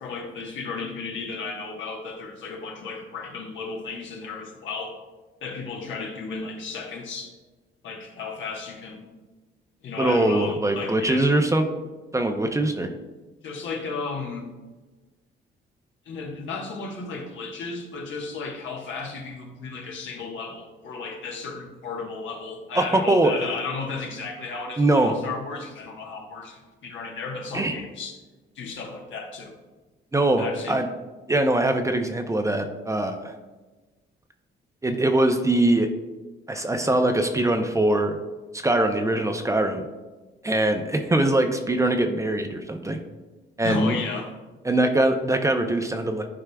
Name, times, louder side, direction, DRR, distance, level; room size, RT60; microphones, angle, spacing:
voice 1, 0.0-4.9 5.4-7.3 7.8-9.1 9.8-11.3 13.4-14.5 16.0-28.2 28.5-29.5 30.4-30.8 43.6-44.3, left 4 dB, 70° left, 1 dB, 1.3 m, -34 dB
voice 2, 10.0-11.7 12.1-13.0 22.7-23.3 24.8-25.2 27.5-27.8 30.1-30.9 31.3-33.3 34.8-35.9 36.5-38.2 38.5-39.9 40.4-43.0 43.6-43.9 44.6-46.3, right 1 dB, 15° right, 5 dB, 0.6 m, -22 dB
11.0 x 4.7 x 2.3 m, 1.2 s
cardioid pair, 90°, 20 cm